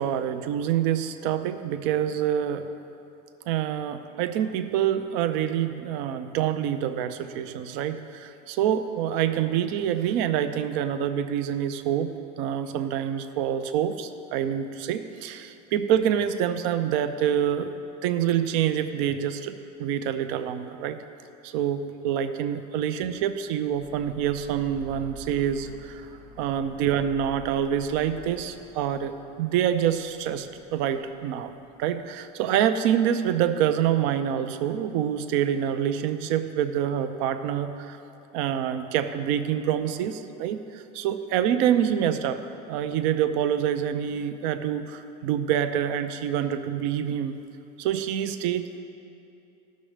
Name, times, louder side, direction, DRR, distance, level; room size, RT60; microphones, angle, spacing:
voice 1, 0.0-2.7 3.5-17.8 18.0-21.0 21.4-26.1 26.4-31.5 31.8-38.0 38.3-42.4 42.7-47.4 47.8-48.8, right 9 dB, 65° right, 10 dB, 0.6 m, -26 dB
sound 1, 23.6-32.0, left 2 dB, 85° right, 1.1 m, -48 dB
15.5 x 6.3 x 3.3 m, 2.7 s
supercardioid pair, 125°, 21 cm